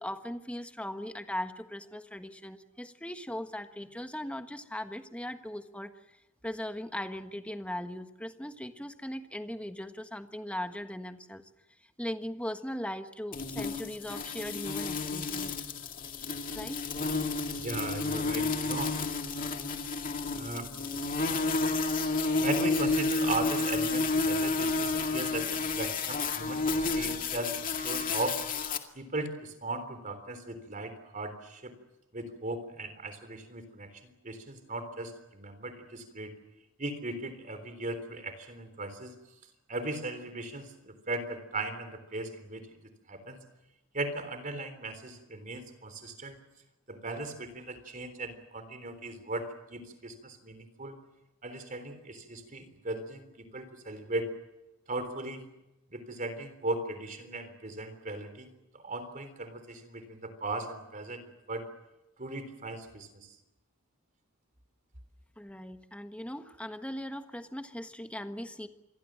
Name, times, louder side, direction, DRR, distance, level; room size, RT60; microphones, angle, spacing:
voice 1, 0.0-5.9 6.4-11.4 12.0-15.6 16.5-16.8 65.4-68.7, left 1 dB, 5° left, 7 dB, 1.4 m, -39 dB
sound 1, 13.3-28.8, left 3 dB, 40° left, 2.2 m, -31 dB
voice 2, 17.5-19.0 20.3-20.7 22.4-28.4 28.9-31.7 32.1-36.3 36.8-39.2 39.7-42.6 43.1-43.4 43.9-46.4 46.9-51.0 51.4-54.3 54.9-55.4 55.9-61.7 62.2-63.3, right 2 dB, 40° right, 9 dB, 3.6 m, -37 dB
27.5 x 22.5 x 7.6 m, 0.96 s
head